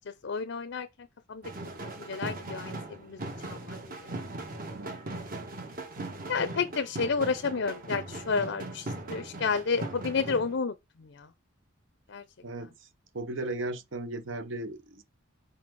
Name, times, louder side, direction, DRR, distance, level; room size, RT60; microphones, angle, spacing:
voice 1, 0.2-0.9 1.3-1.4 2.0-3.2 3.5-4.1 6.3-11.3 12.1-12.2, left 5 dB, 60° left, 0.5 m, -31 dB
sound 1, 1.4-10.6, right 2 dB, 45° right, 1.3 m, -39 dB
voice 2, 13.1-15.0, right 2 dB, 65° right, 0.8 m, -36 dB
5.0 x 4.2 x 4.5 m
head